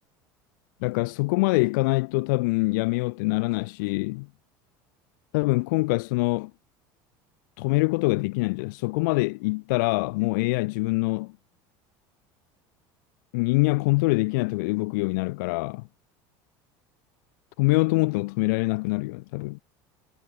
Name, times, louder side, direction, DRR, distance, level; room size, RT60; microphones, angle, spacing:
voice 1, 0.8-4.3 5.3-6.5 7.6-11.3 13.3-15.8 17.6-19.6, left 25 dB, 85° left, 2.4 m, -24 dB
cardioid pair, 170°, 10 cm